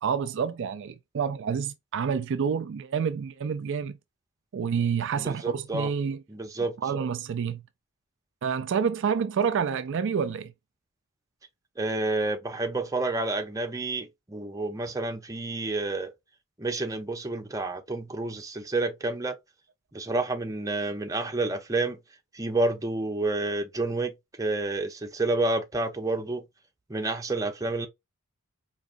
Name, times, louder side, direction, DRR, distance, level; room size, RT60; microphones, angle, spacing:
voice 1, 0.0-4.0 4.5-6.2 6.8-7.6 8.4-10.5, right 6 dB, 55° right, 0.4 m, -28 dB
voice 2, 5.2-5.9 6.3-6.7 11.8-16.1 16.6-19.4 19.9-22.0 22.3-24.1 24.4-26.4 26.9-27.9, right 2 dB, 15° right, 0.6 m, -29 dB
4.7 x 3.0 x 2.5 m
head